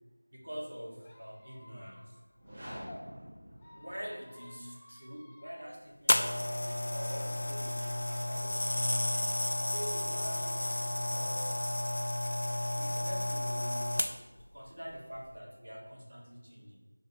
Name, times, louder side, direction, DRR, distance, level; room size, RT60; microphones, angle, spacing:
voice 1, 0.3-2.0 3.7-9.0 9.6-10.6 10.9-11.5 12.8-13.9 14.5-16.8, equal, 75° right, -1 dB, 2.2 m, -45 dB
Squeak, 1.0-3.0 3.5-5.7, left 2 dB, 10° left, 0.7 m, -55 dB
sound 1, 2.3-4.4, equal, 30° right, 2.5 m, -47 dB
sound 2, 6.1-14.4 15.1-15.4, left 1 dB, 50° left, 0.6 m, -32 dB
10.0 x 4.1 x 4.4 m, 1.2 s
figure-of-eight pair, 175°, 0 cm